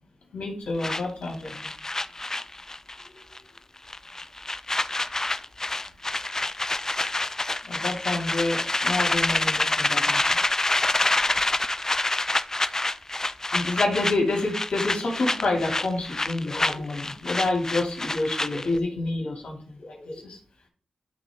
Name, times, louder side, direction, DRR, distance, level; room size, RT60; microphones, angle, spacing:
voice 1, 0.3-1.5 7.6-10.2 13.5-20.4, left 2 dB, 80° left, -1 dB, 2.3 m, -28 dB
sound 1, 0.8-3.1 3.3-3.6 3.9-18.8, left 2 dB, 25° left, 0.4 m, -27 dB
11.0 x 3.8 x 3.5 m, 0.40 s
wide cardioid pair, 70°, 2 cm